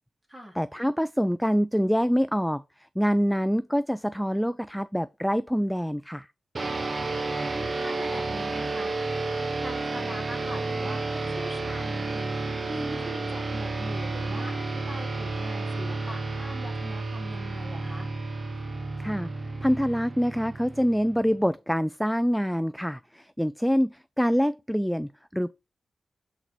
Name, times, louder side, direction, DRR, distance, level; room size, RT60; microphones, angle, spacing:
voice 1, 0.6-2.6 3.0-6.3 19.0-19.3 19.6-25.5, equal, ahead, 0.3 m, -25 dB
sound 1, 6.5-21.4, right 3 dB, 40° right, 0.9 m, -31 dB
voice 2, 7.2-8.9 9.6-12.3 12.7-18.1, equal, 15° right, 2.9 m, -41 dB
7.6 x 4.0 x 4.4 m
wide cardioid pair, 90°, 0 cm